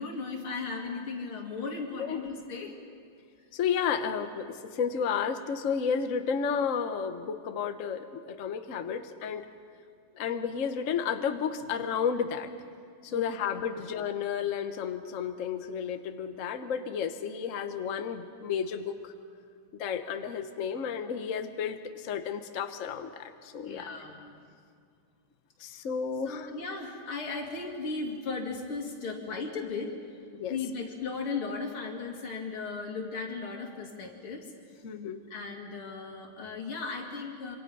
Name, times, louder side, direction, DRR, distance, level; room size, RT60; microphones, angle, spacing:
voice 1, 0.0-2.8 13.1-13.2 13.7-13.8 23.6-24.4 26.3-29.9 30.5-34.5 35.3-37.6, left 4 dB, 85° left, 1 dB, 3.3 m, -36 dB
voice 2, 3.5-9.4 10.1-12.5 13.0-19.1 19.8-23.9 25.6-26.5 30.3-30.6 34.8-35.2, left 7 dB, 50° left, 8 dB, 1.1 m, -32 dB
26.0 x 25.0 x 5.5 m, 2.2 s
omnidirectional pair, 2.3 m